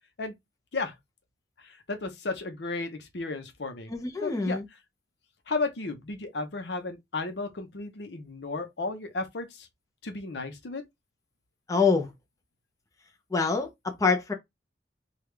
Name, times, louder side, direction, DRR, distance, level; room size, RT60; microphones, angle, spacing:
voice 1, 1.6-3.9 4.2-4.6 5.5-9.7 10.0-10.8, left 3 dB, 75° left, 0.7 m, -34 dB
voice 2, 3.9-4.6 11.7-12.1 13.3-13.7 14.0-14.3, left 4 dB, 20° left, 0.6 m, -25 dB
3.4 x 2.3 x 3.2 m
head